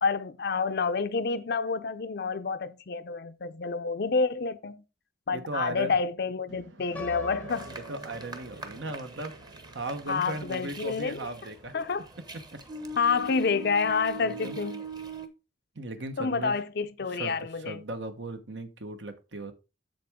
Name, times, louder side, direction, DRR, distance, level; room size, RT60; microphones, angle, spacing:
voice 1, 0.0-4.8 5.3-7.7 10.1-11.2 11.7-12.0 13.0-14.8 16.2-17.8, left 4 dB, 55° left, 0.5 m, -28 dB
voice 2, 5.3-5.9 7.9-9.3 9.7-11.7 12.5-12.6 14.2-14.6 15.7-16.5 17.1-19.5, right 2 dB, 70° right, 1.1 m, -37 dB
sound 1, 6.5-12.8, right 3 dB, 90° right, 1.2 m, -49 dB
Piano, 6.9-8.9, left 3 dB, 10° left, 0.5 m, -44 dB
sound 2, 7.5-15.3, right 2 dB, 20° right, 1.0 m, -42 dB
7.7 x 7.5 x 3.6 m
head